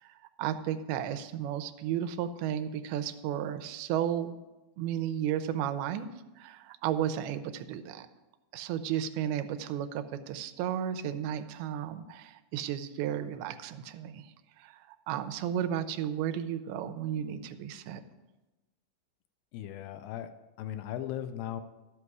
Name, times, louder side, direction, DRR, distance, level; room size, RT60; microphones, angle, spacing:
voice 1, 0.0-4.4 4.8-6.1 6.4-8.1 8.5-18.0, right 10 dB, 90° right, 9 dB, 2.6 m, -33 dB
voice 2, 19.5-20.3 20.6-21.6, left 11 dB, 80° left, 10 dB, 2.1 m, -37 dB
12.0 x 8.1 x 4.7 m, 1.1 s
omnidirectional pair, 4.4 m